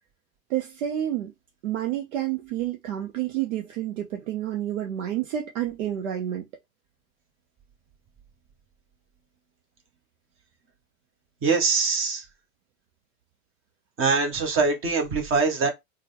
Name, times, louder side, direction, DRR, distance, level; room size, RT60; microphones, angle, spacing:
voice 1, 0.5-1.3 1.6-6.5, right 11 dB, 60° right, 0.8 m, -29 dB
voice 2, 11.4-12.2 14.0-15.7, right 4 dB, 30° right, 1.3 m, -23 dB
3.7 x 2.3 x 3.3 m
hypercardioid pair, 100°, 42 cm